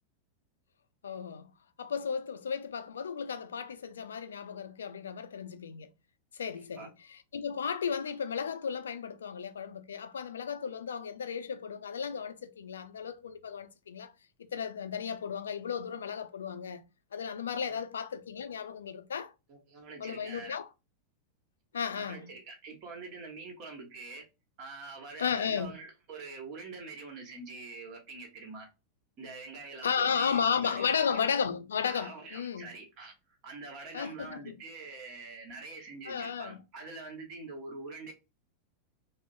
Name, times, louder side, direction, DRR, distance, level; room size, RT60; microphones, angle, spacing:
voice 1, 1.0-1.5 1.8-5.9 6.3-14.1 14.4-16.8 17.1-19.3 20.0-20.7 21.7-22.3 25.2-25.8 29.8-32.7 33.9-34.6 36.1-36.6, left 7 dB, 65° left, 0.4 m, -34 dB
voice 2, 19.5-20.6 22.0-24.3 24.6-28.7 29.2-31.2 31.9-33.1 33.4-38.1, right 3 dB, 40° right, 1.2 m, -45 dB
3.6 x 2.0 x 2.5 m
figure-of-eight pair, 90°, 0 cm